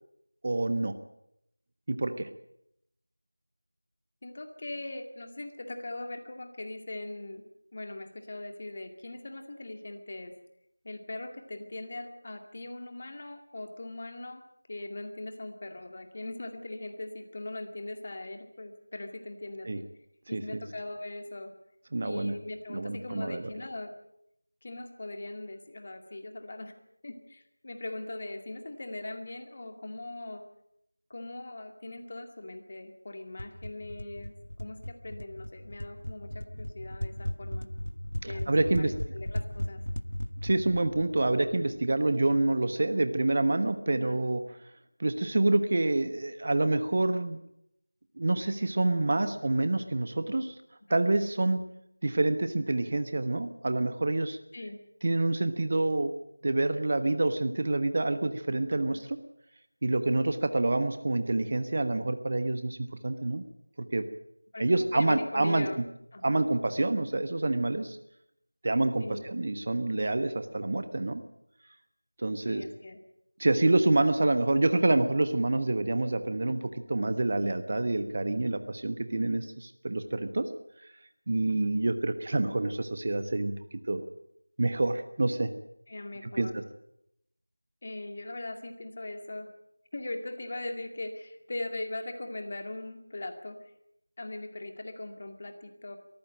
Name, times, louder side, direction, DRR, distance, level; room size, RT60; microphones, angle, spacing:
voice 1, 0.4-0.9 1.9-2.3 19.7-19.8 20.3-20.6 21.9-22.3 22.7-23.5 38.2-38.9 40.4-44.4 45.0-47.4 48.2-50.5 50.9-51.6 52.0-54.4 55.0-56.1 56.4-59.0 59.8-63.4 63.9-64.1 64.6-65.7 66.2-68.0 68.6-71.2 72.2-72.6 73.4-79.4 79.8-80.5 81.3-83.5 83.9-84.0 84.6-85.5 86.4-86.6, right 2 dB, 35° right, 10 dB, 1.2 m, -27 dB
voice 2, 4.2-7.4 7.7-10.3 10.8-14.4 14.7-19.9 20.3-21.5 22.0-23.9 24.6-26.7 27.0-30.4 31.1-34.3 34.6-37.7 38.2-39.8 43.9-44.2 50.9-51.0 54.5-54.8 58.7-59.0 64.5-65.8 66.1-66.5 69.0-69.2 72.5-73.0 79.1-79.4 81.5-81.7 85.9-86.6 87.8-89.5 89.9-93.6 94.2-96.0, left 2 dB, 30° left, 6 dB, 2.2 m, -40 dB
sound 1, 33.4-42.0, left 1 dB, 75° left, 0.8 m, -37 dB
23.0 x 14.5 x 9.0 m, 0.79 s
figure-of-eight pair, 170°, 0 cm